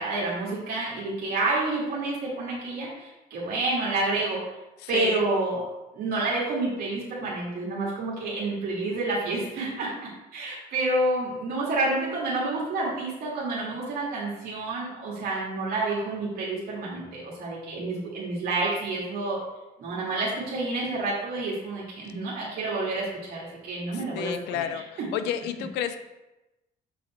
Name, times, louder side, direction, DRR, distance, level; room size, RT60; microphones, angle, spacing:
voice 1, 0.0-4.4 4.9-5.6 5.9-9.9 10.3-19.4 19.8-24.7 25.0-25.1, right 2 dB, 65° right, -5 dB, 2.1 m, -29 dB
voice 2, 4.8-5.3 23.9-26.0, left 9 dB, 85° left, 10 dB, 0.6 m, -31 dB
7.1 x 4.2 x 4.3 m, 1.0 s
cardioid pair, 110°, 17 cm